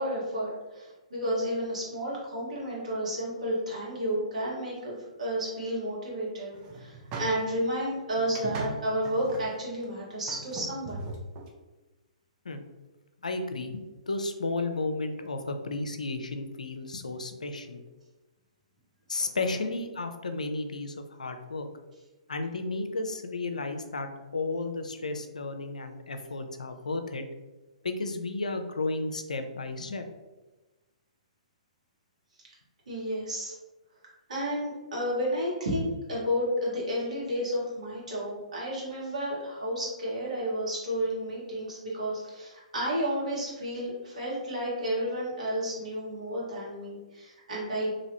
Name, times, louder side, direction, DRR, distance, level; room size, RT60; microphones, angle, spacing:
voice 1, 0.0-4.9 5.2-11.1 19.2-19.3 32.9-33.5 34.3-47.9, equal, 70° right, -5 dB, 1.4 m, -31 dB
sound 1, 6.5-7.6 8.2-9.5 9.8-9.9 10.3-11.5, right 2 dB, 30° right, 0.5 m, -39 dB
voice 2, 13.2-17.8 19.1-21.7 22.3-27.2 27.8-30.0, left 3 dB, 80° left, 7 dB, 0.4 m, -33 dB
3.0 x 2.7 x 2.8 m, 1.1 s
figure-of-eight pair, 120°, 4 cm